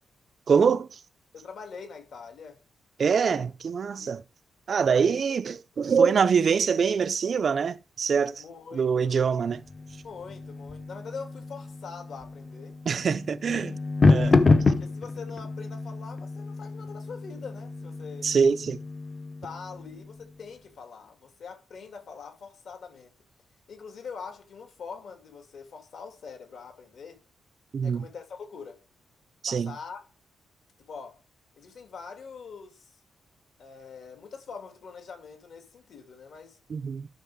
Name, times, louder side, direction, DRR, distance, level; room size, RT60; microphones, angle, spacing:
voice 1, 0.5-1.0 3.0-4.2 4.7-8.4 8.7-9.6 12.9-13.8 14.1-14.3 18.2-18.8 27.7-28.1 29.4-29.7 36.7-37.1, right 6 dB, 40° right, 0.4 m, -24 dB
voice 2, 1.3-2.6 3.1-3.4 3.8-4.1 4.8-5.4 5.9-6.0 8.4-9.3 10.0-12.8 14.0-18.3 19.4-23.1 23.7-27.2 27.8-28.8 29.5-30.1 30.9-31.2 31.5-33.0 33.6-36.6, left 5 dB, 55° left, 2.5 m, -43 dB
sound 1, 9.5-20.3, left 3 dB, 25° left, 0.7 m, -28 dB
11.5 x 6.3 x 3.6 m
wide cardioid pair, 180°, 0 cm